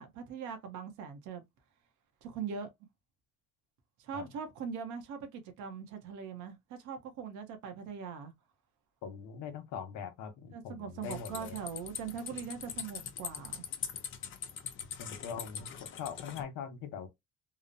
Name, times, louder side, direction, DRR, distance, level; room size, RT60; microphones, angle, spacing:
voice 1, 0.0-1.4 2.2-2.7 4.0-8.3 10.5-13.7, right 6 dB, 80° right, 0.8 m, -41 dB
voice 2, 9.0-11.6 15.0-17.1, left 7 dB, 80° left, 0.9 m, -42 dB
sound 1, 11.0-16.4, left 8 dB, 40° left, 0.6 m, -42 dB
2.9 x 2.0 x 2.5 m
cardioid pair, 130°, 30 cm